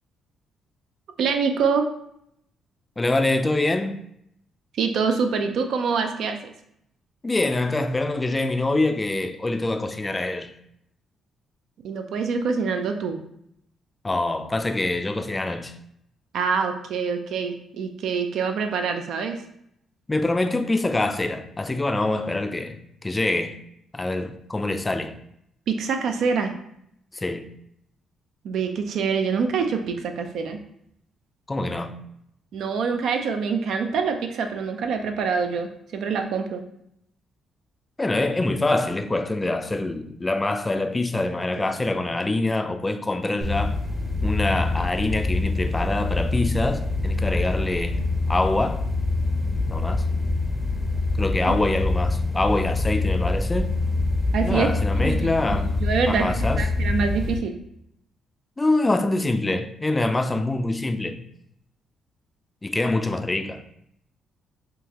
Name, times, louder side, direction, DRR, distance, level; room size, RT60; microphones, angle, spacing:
voice 1, 1.2-1.8 4.8-6.4 11.8-13.2 16.3-19.4 25.7-26.5 28.4-30.6 32.5-36.6 51.5-51.6 54.3-57.5, right 5 dB, 75° right, 0.4 m, -25 dB
voice 2, 3.0-4.0 7.2-10.5 14.0-15.7 20.1-23.6 23.9-25.2 27.1-27.5 31.5-32.0 38.0-43.8 44.2-48.0 48.3-48.8 49.7-50.1 51.2-53.7 54.4-55.7 56.1-56.7 58.6-61.2 62.6-63.6, left 2 dB, 20° left, 0.3 m, -25 dB
sound 1, 43.4-57.4, left 2 dB, 15° right, 0.7 m, -25 dB
3.7 x 2.7 x 2.9 m
cardioid pair, 90°, 0 cm